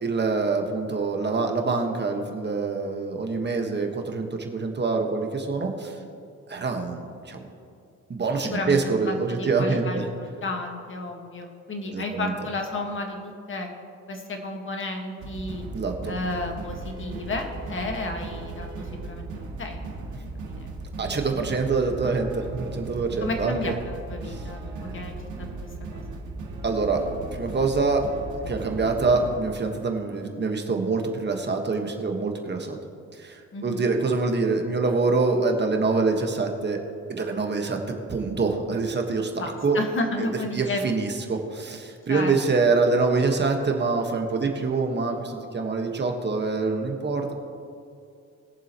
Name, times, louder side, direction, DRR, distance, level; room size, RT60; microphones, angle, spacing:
voice 1, 0.0-6.0 6.5-7.5 8.1-10.1 11.9-12.3 15.7-16.1 21.0-23.7 24.3-24.4 26.6-27.0 27.3-28.0 28.5-32.8 33.1-36.8 37.1-37.8 38.1-39.3 39.6-39.8 40.5-47.3, right 4 dB, 35° right, 3 dB, 1.5 m, -25 dB
voice 2, 8.4-13.7 14.1-15.6 16.0-20.7 23.2-26.2 33.5-33.9 39.4-40.8 42.1-42.3, left 2 dB, 40° left, 3 dB, 1.6 m, -33 dB
sound 1, 15.2-29.4, right 3 dB, 75° right, 1.9 m, -37 dB
21.5 x 7.3 x 3.0 m, 2.4 s
cardioid pair, 90°, 30 cm